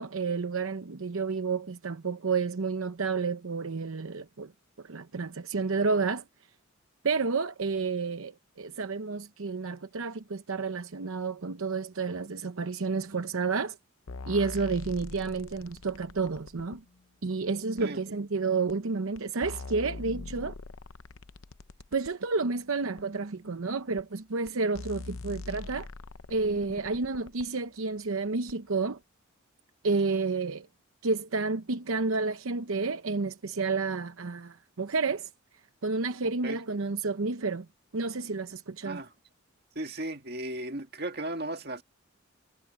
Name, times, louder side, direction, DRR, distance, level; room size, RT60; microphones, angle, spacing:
voice 1, 0.0-4.5 4.8-6.2 7.0-13.8 14.3-16.8 17.2-20.5 21.9-25.9 26.3-29.0 29.8-30.7 31.0-35.3 35.8-37.7 37.9-39.0, right 4 dB, 80° right, 0.8 m, -30 dB
sound 1, 14.1-16.8 17.8-17.9 18.7-18.8 19.2-22.1 23.0-23.1 24.0-24.1 24.5-24.6 24.7-27.5 28.5-28.6, left 3 dB, 75° left, 0.7 m, -42 dB
voice 2, 39.8-41.8, right 1 dB, 50° right, 2.0 m, -36 dB
head